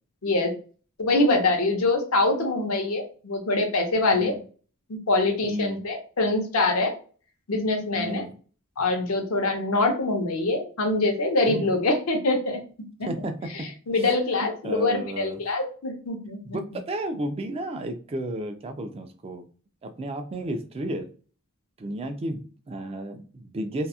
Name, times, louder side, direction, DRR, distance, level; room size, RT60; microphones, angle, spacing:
voice 1, 1.0-4.3 4.9-6.9 7.5-8.2 8.8-12.6 13.0-13.1 13.5-16.6, left 2 dB, 70° left, 3 dB, 0.7 m, -24 dB
voice 2, 5.4-5.8 8.0-8.3 11.5-11.8 13.1-13.7 14.6-15.4 16.4-19.5 19.8-21.1 21.8-23.9, right 1 dB, 25° right, 6 dB, 0.3 m, -33 dB
2.8 x 2.3 x 2.3 m, 0.40 s
head